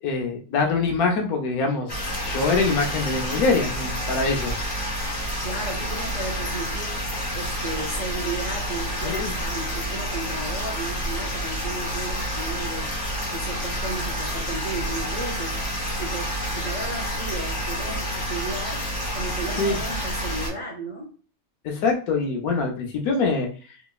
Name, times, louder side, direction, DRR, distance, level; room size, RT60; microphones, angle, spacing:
voice 1, 0.0-1.9 2.2-4.6 9.0-9.3 19.6-19.8 21.6-23.5, left 4 dB, 90° left, 3 dB, 1.2 m, -24 dB
sound 1, 1.9-20.5, equal, 25° left, 0.9 m, -29 dB
voice 2, 5.4-13.0 13.3-21.1, right 2 dB, 45° right, -3 dB, 0.5 m, -34 dB
3.2 x 3.0 x 2.3 m, 0.39 s
omnidirectional pair, 1.5 m